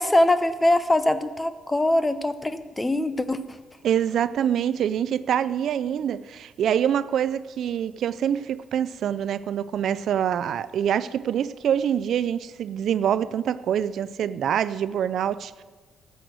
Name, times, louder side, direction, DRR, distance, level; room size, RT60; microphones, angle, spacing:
voice 1, 0.0-3.4, left 1 dB, 15° left, 0.7 m, -22 dB
voice 2, 3.8-15.6, right 9 dB, 70° right, 0.4 m, -25 dB
13.0 x 7.7 x 6.3 m
cardioid pair, 90°, 0 cm